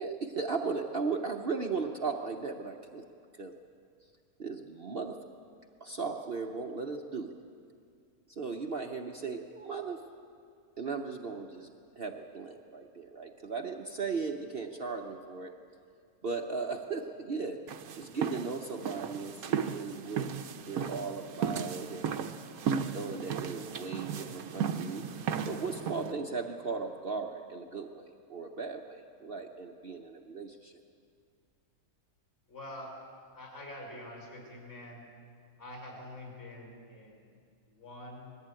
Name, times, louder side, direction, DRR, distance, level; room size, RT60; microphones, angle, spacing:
voice 1, 0.0-3.1 3.3-3.5 4.4-5.2 5.8-7.3 8.3-10.0 10.8-11.7 12.0-15.5 16.2-17.6 18.0-20.3 20.7-22.3 22.9-25.1 25.5-30.7, right 4 dB, 45° right, 3 dB, 1.0 m, -37 dB
sound 1, 17.7-26.1, right 7 dB, 75° right, 1.3 m, -35 dB
voice 2, 32.5-33.0 33.3-35.0 35.6-37.3 37.6-38.3, left 1 dB, 45° left, 0 dB, 5.9 m, -46 dB
20.5 x 14.5 x 9.0 m, 2.3 s
omnidirectional pair, 1.6 m